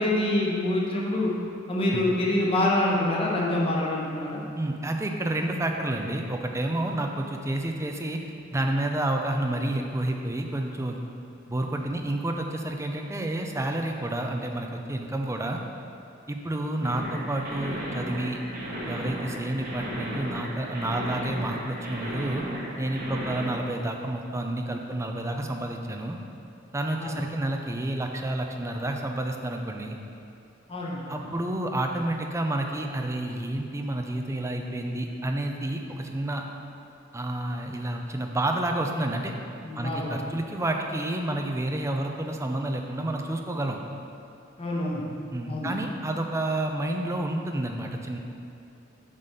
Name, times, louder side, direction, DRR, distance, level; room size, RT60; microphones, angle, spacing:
voice 1, 0.0-1.3 1.7-4.4 16.8-17.0 27.0-27.2 30.7-31.3 39.6-40.2 44.6-45.0 45.5-45.7, left 1 dB, 30° left, -3 dB, 1.1 m, -26 dB
voice 2, 4.6-8.2 8.5-11.0 11.5-15.6 16.3-18.4 18.9-22.4 22.8-26.2 26.7-30.0 31.1-36.4 37.1-39.3 39.8-43.8 45.3-48.2, right 1 dB, 15° right, 3 dB, 0.5 m, -29 dB
sound 1, 16.8-23.4, equal, 45° right, 1.8 m, -35 dB
7.2 x 4.0 x 6.7 m, 2.6 s
head